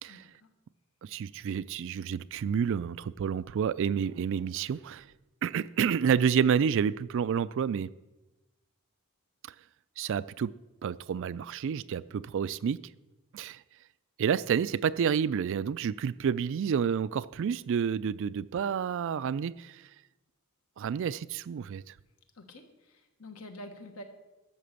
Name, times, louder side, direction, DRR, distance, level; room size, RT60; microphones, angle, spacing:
voice 1, 0.1-0.5 22.3-24.0, left 1 dB, 75° left, 1.4 m, -47 dB
voice 2, 1.0-5.1 5.4-7.9 10.0-10.5 10.8-12.8 13.3-13.6 14.2-19.8 20.8-21.9, right 7 dB, 60° right, 0.3 m, -29 dB
12.5 x 6.0 x 6.8 m
head